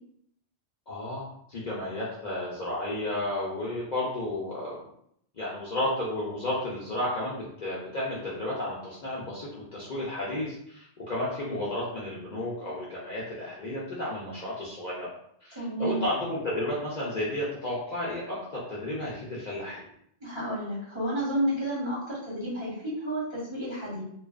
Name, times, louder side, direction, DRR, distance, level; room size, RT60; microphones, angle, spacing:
voice 1, 0.9-4.8 5.3-15.1 15.4-19.8, left 1 dB, 50° left, -6 dB, 0.6 m, -32 dB
voice 2, 15.5-16.0 20.2-24.0, right 1 dB, 25° right, -9 dB, 0.9 m, -31 dB
2.6 x 2.3 x 2.3 m, 0.70 s
omnidirectional pair, 1.2 m